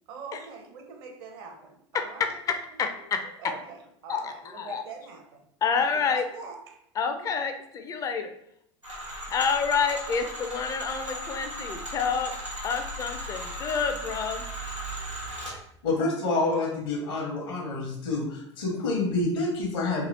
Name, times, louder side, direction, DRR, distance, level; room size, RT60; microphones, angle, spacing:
voice 1, 0.1-2.4 2.7-5.4 5.7-7.2, right 4 dB, 55° right, 4 dB, 0.6 m, -44 dB
voice 2, 2.5-3.2 4.1-4.8 5.6-6.2 7.0-8.3 9.3-12.3 12.6-14.4, left 6 dB, 20° left, 6 dB, 0.4 m, -28 dB
sound 1, 8.8-15.6, equal, 90° right, 1.0 m, -36 dB
voice 3, 15.8-20.1, left 2 dB, 55° left, -1 dB, 0.8 m, -28 dB
2.9 x 2.8 x 2.6 m, 0.72 s
figure-of-eight pair, 80°, 15 cm